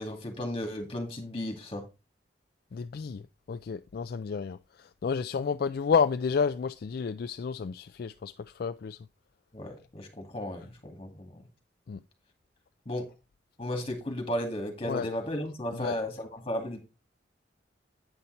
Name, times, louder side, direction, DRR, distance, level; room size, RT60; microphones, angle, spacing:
voice 1, 0.0-1.8 9.5-11.4 12.9-13.1 13.6-16.8, left 1 dB, 30° left, 2.3 m, -34 dB
voice 2, 2.7-3.2 3.5-9.0 11.9-12.0 14.8-15.1 15.8-16.0, left 6 dB, 60° left, 0.3 m, -30 dB
9.1 x 5.7 x 4.0 m
head